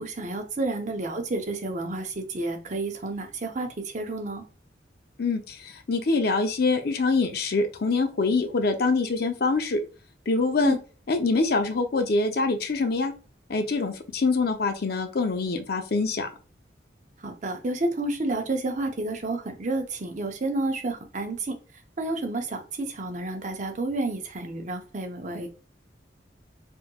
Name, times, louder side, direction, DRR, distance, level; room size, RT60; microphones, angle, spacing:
voice 1, 0.0-4.4 10.6-10.8 17.2-21.6 22.0-25.6, right 2 dB, 40° right, 4 dB, 0.7 m, -30 dB
voice 2, 5.2-9.8 10.3-10.8 11.1-13.1 13.5-16.3, left 3 dB, 55° left, 6 dB, 0.6 m, -25 dB
3.5 x 3.0 x 2.2 m, 0.36 s
head